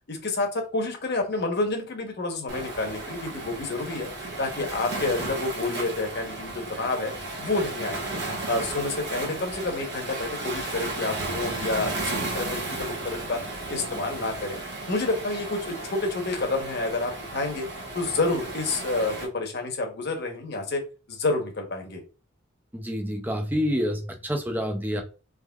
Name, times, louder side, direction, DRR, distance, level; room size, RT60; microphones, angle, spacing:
voice 1, 0.1-8.2 8.5-13.4 13.7-14.6 14.9-17.7 17.9-20.8 21.1-22.0, left 2 dB, 55° left, 3 dB, 0.9 m, -29 dB
Waves surf, 2.5-19.3, right 2 dB, 55° right, 1.0 m, -34 dB
voice 2, 22.7-25.0, equal, 10° right, 4 dB, 0.5 m, -28 dB
3.6 x 3.1 x 2.3 m, 0.33 s
head